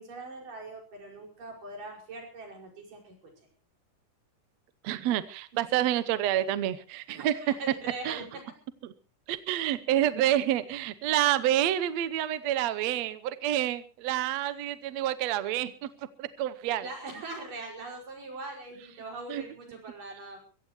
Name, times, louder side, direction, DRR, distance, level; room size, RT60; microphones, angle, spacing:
voice 1, 0.0-3.2 5.5-5.6 7.1-8.4 9.5-9.7 16.8-20.4, right 2 dB, 85° right, 1 dB, 7.1 m, -42 dB
voice 2, 4.8-7.5 8.1-8.2 8.8-8.9 9.3-15.9 16.2-16.9 19.3-19.4, right 12 dB, 70° right, 14 dB, 1.9 m, -28 dB
23.5 x 16.5 x 3.1 m, 0.35 s
omnidirectional pair, 3.7 m